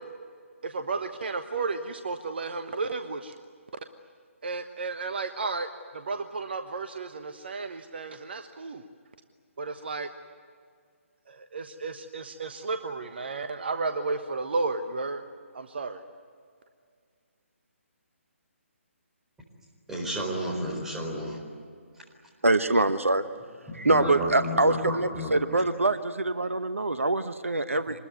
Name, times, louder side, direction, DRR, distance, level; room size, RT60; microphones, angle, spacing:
voice 1, 0.6-3.3 4.4-5.7 5.9-8.9 9.6-10.1 11.3-15.2 15.5-16.0, right 3 dB, 50° right, 8 dB, 1.2 m, -33 dB
voice 2, 19.9-21.4 23.7-25.7, equal, 5° right, -2 dB, 4.4 m, -32 dB
voice 3, 22.4-23.3 23.8-28.0, right 2 dB, 70° right, 11 dB, 1.0 m, -24 dB
25.5 x 21.0 x 9.4 m, 2.1 s
figure-of-eight pair, 140°, 7 cm